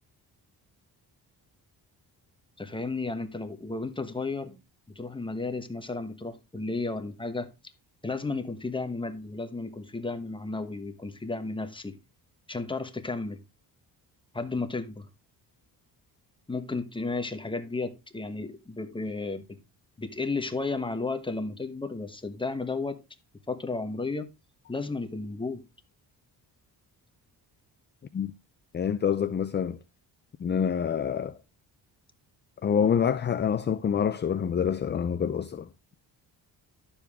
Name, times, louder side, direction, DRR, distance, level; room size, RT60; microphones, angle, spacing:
voice 1, 2.6-4.6 4.9-7.5 8.0-12.0 12.5-13.4 14.3-15.1 16.5-19.6 20.0-23.0 23.5-24.3 24.7-25.6, left 3 dB, 10° left, 1.1 m, -33 dB
voice 2, 28.7-29.8 30.4-31.4 32.6-35.9, left 7 dB, 30° left, 0.5 m, -27 dB
12.0 x 7.1 x 3.5 m
cardioid pair, 155°, 39 cm